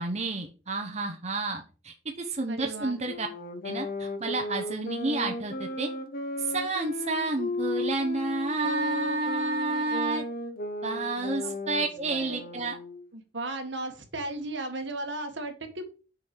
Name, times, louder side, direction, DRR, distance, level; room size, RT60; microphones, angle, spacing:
voice 1, 0.0-3.3 3.6-5.9 6.5-10.2 10.8-12.8, right 2 dB, 35° right, 3 dB, 1.1 m, -30 dB
voice 2, 2.5-3.0 11.4-11.5 12.1-12.4 13.1-15.8, right 2 dB, 70° right, 5 dB, 1.7 m, -35 dB
sound 1, 3.0-13.1, left 2 dB, 50° left, 1.2 m, -35 dB
6.9 x 4.6 x 6.7 m, 0.35 s
head